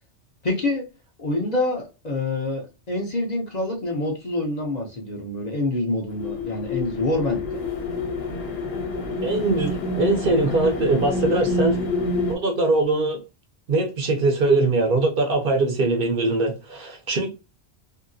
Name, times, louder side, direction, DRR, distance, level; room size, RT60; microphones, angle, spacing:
voice 1, 0.4-0.8 1.2-7.6, left 2 dB, 45° left, 0.7 m, -26 dB
sound 1, 6.1-12.4, left 2 dB, 60° left, 1.0 m, -27 dB
voice 2, 9.2-11.8 12.3-13.2 13.7-17.3, right 2 dB, 55° right, 0.7 m, -22 dB
2.8 x 2.7 x 2.6 m
omnidirectional pair, 1.2 m